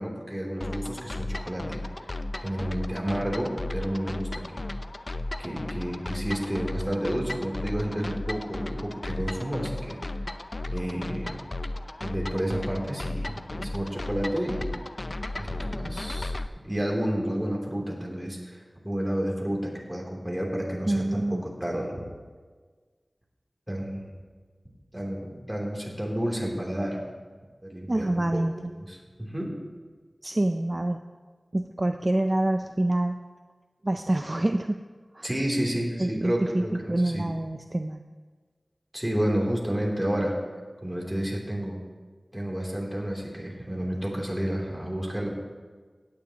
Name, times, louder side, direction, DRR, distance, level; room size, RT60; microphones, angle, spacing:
voice 1, 0.0-2.1 2.4-4.6 5.4-10.0 10.2-10.3 10.7-11.4 12.0-14.7 15.3-16.4 16.6-22.0 23.7-24.1 24.9-27.0 27.6-28.4 28.7-29.5 35.2-37.2 38.9-40.3 40.8-41.8 42.3-45.3, equal, 10° right, -2 dB, 3.1 m, -30 dB
sound 1, 0.6-16.5, left 2 dB, 50° left, 0.5 m, -35 dB
voice 2, 20.9-21.4 27.9-28.7 30.2-31.0 31.5-33.2 33.8-34.8 35.1-35.3 36.0-38.0, right 1 dB, 40° right, 6 dB, 0.5 m, -26 dB
17.0 x 9.3 x 2.9 m, 1.5 s
wide cardioid pair, 40°, 0 cm